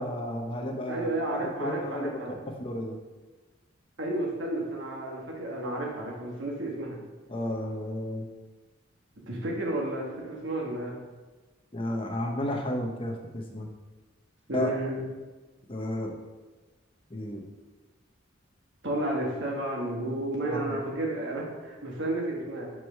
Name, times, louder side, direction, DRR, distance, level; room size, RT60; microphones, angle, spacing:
voice 1, 0.0-2.2 2.5-3.0 7.3-8.3 11.7-13.7 14.5-14.7 15.7-16.2 17.1-17.4 20.5-20.8, left 1 dB, 25° left, 2 dB, 0.7 m, -32 dB
voice 2, 0.9-2.3 4.0-7.0 9.3-11.0 14.5-15.0 18.8-22.7, right 1 dB, 65° right, -1 dB, 1.3 m, -32 dB
4.8 x 4.7 x 4.4 m, 1.2 s
head